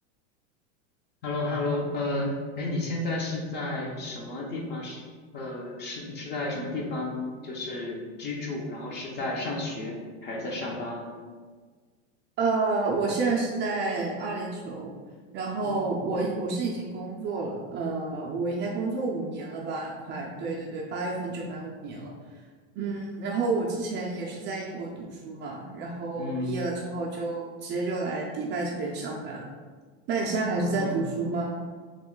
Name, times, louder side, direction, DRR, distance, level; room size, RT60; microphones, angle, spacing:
voice 1, 1.2-5.0 5.3-11.1 15.6-15.8 26.2-26.5 30.5-31.0, left 2 dB, 30° left, -1 dB, 0.6 m, -32 dB
voice 2, 12.4-14.9 15.3-22.1 22.8-29.5 30.1-31.5, right 3 dB, 30° right, -2 dB, 0.4 m, -30 dB
3.0 x 2.2 x 3.7 m, 1.5 s
supercardioid pair, 125°, 35 cm